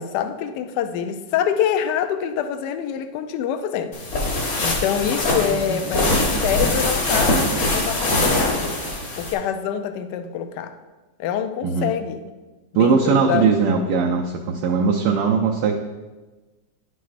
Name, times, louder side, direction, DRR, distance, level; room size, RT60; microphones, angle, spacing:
voice 1, 0.0-3.9 4.6-8.8 9.2-10.7 11.2-12.2 12.8-13.6, left 8 dB, 75° left, 9 dB, 1.1 m, -25 dB
sound 1, 3.9-9.3, left 1 dB, 45° left, 1.5 m, -22 dB
voice 2, 5.5-5.8 11.6-11.9 12.7-15.7, right 5 dB, 75° right, 1 dB, 1.2 m, -20 dB
11.0 x 6.2 x 2.5 m, 1.2 s
omnidirectional pair, 1.9 m